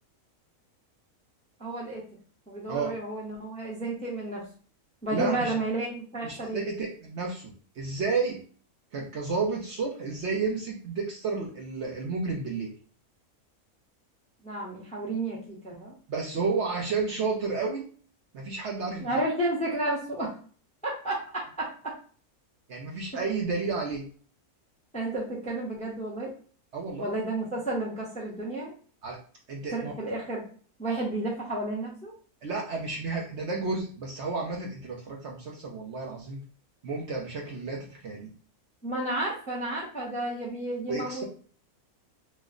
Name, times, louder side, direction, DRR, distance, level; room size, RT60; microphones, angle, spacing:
voice 1, 1.6-2.0 2.5-4.4 5.0-6.6 14.4-15.9 19.0-20.3 20.8-21.9 24.9-26.3 27.0-28.7 29.7-30.4 30.8-32.1 38.8-41.2, right 2 dB, 10° left, -3 dB, 0.5 m, -31 dB
voice 2, 5.1-5.5 6.2-8.4 8.9-12.7 16.1-17.8 18.3-19.2 22.7-24.0 26.7-27.1 29.0-29.2 29.5-29.9 32.4-36.4 36.8-38.3 40.9-41.2, right 4 dB, 60° right, -1 dB, 0.8 m, -31 dB
3.0 x 2.1 x 3.6 m, 0.43 s
omnidirectional pair, 1.6 m